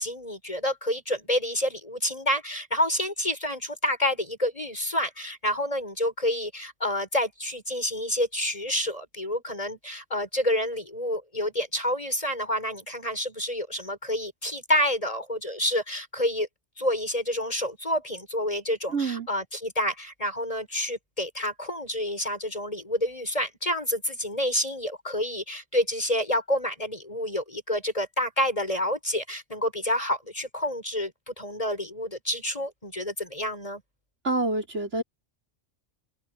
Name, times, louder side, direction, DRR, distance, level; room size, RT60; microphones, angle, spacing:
voice 1, 0.0-16.5 16.8-33.8, left 1 dB, 30° left, 6.5 m, -28 dB
voice 2, 18.9-19.3 34.2-35.0, right 3 dB, 85° right, 5.3 m, -27 dB
omnidirectional pair, 1.2 m